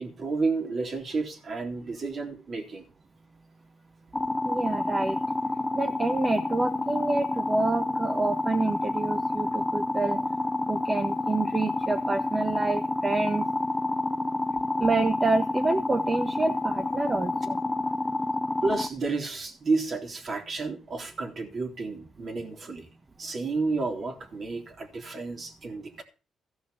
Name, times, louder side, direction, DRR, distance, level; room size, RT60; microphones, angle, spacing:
voice 1, 0.0-2.8 18.6-22.9 23.2-26.0, right 3 dB, 45° right, 3.5 m, -31 dB
sound 1, 4.1-18.9, left 2 dB, 10° left, 0.8 m, -29 dB
voice 2, 4.4-5.2 5.7-10.2 10.7-13.4 14.8-17.6, right 3 dB, 25° right, 1.2 m, -27 dB
15.0 x 6.2 x 6.8 m
cardioid pair, 90°, 0 cm